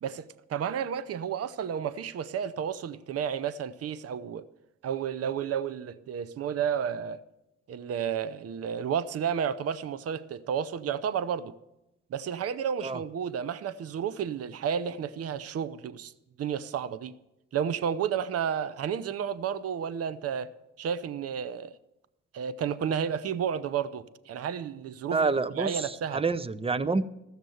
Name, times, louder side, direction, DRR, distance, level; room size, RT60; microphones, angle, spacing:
voice 1, 0.0-4.5 4.8-7.2 7.7-11.5 12.1-16.1 16.4-17.1 17.5-20.5 20.8-21.7 22.3-25.2 25.6-26.2, right 8 dB, 55° right, 0.7 m, -31 dB
voice 2, 25.1-27.0, right 4 dB, 20° right, 0.6 m, -28 dB
14.5 x 6.7 x 7.8 m
cardioid pair, 90°, 30 cm